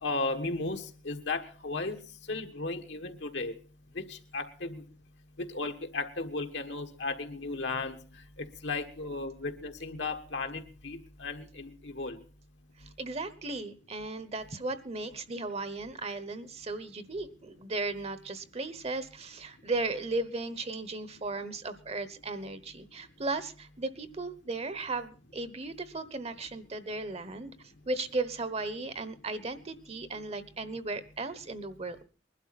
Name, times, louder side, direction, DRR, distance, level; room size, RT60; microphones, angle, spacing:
voice 1, 0.0-2.0 2.3-3.5 3.9-4.8 5.4-8.0 8.4-12.2, left 3 dB, 70° left, 5 dB, 1.4 m, -35 dB
voice 2, 12.8-27.5 27.9-32.0, right 3 dB, 35° right, 13 dB, 1.0 m, -36 dB
21.0 x 12.0 x 4.1 m, 0.36 s
head